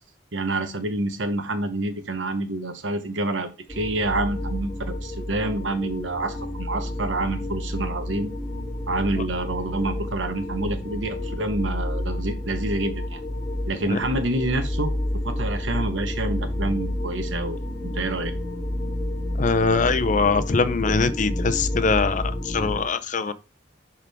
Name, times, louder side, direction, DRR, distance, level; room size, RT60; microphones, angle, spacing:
voice 1, 0.3-8.3 8.9-13.2 13.7-17.6 17.9-18.3, right 2 dB, 80° right, 1.1 m, -28 dB
sound 1, 3.7-22.8, left 1 dB, 5° right, 2.8 m, -30 dB
voice 2, 19.4-23.3, left 4 dB, 45° left, 0.6 m, -22 dB
10.5 x 3.7 x 3.5 m
head